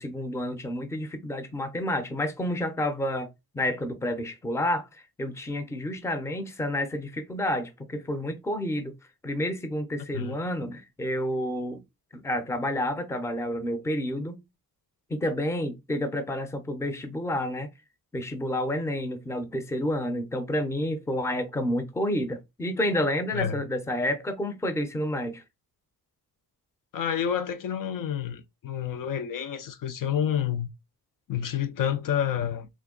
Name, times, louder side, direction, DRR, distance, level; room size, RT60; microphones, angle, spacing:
voice 1, 0.0-3.3 3.5-8.9 9.2-11.8 12.1-14.4 15.1-17.7 18.1-25.4, left 1 dB, 5° left, 0.5 m, -29 dB
voice 2, 26.9-30.7 31.3-32.7, left 9 dB, 55° left, 0.5 m, -29 dB
3.5 x 2.2 x 3.6 m
wide cardioid pair, 140°, 39 cm